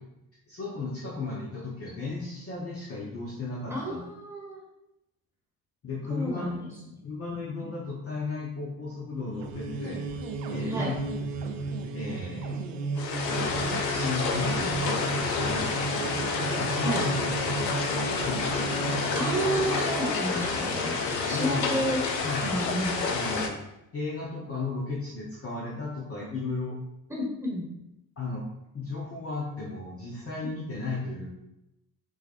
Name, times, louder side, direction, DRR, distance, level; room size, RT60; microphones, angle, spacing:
voice 1, 0.5-4.0 5.8-6.6 7.0-10.0 10.5-11.0 11.4-11.5 11.9-12.6 13.3-17.1 17.4-18.9 21.0-21.7 22.2-22.6 23.1-23.6 23.9-26.8 28.2-28.5 28.7-31.3, left 3 dB, 30° left, -4 dB, 0.8 m, -35 dB
voice 2, 3.7-4.6 6.1-6.7 7.6-7.7 10.7-10.9 16.8-17.0 19.1-22.0 22.4-22.9 27.1-27.6, right 1 dB, 5° right, -4 dB, 1.4 m, -31 dB
sound 1, 9.2-20.3, right 3 dB, 70° right, 0.6 m, -34 dB
sound 2, 13.0-23.5, left 4 dB, 80° left, 0.6 m, -29 dB
5.9 x 2.4 x 2.4 m, 0.88 s
figure-of-eight pair, 50°, 49 cm